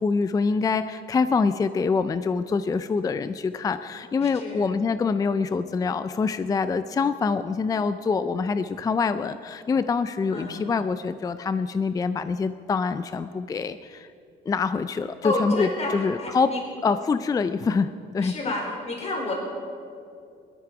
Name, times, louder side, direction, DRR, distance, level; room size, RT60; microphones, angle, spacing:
voice 1, 0.0-14.1 14.5-16.5 16.8-18.5, left 4 dB, 20° left, 12 dB, 0.4 m, -25 dB
voice 2, 4.2-4.7 10.3-10.6 15.2-15.9 16.2-16.6 18.2-19.3, left 2 dB, 40° left, 0 dB, 3.8 m, -30 dB
19.0 x 13.0 x 4.9 m, 2.4 s
cardioid pair, 110°, 17 cm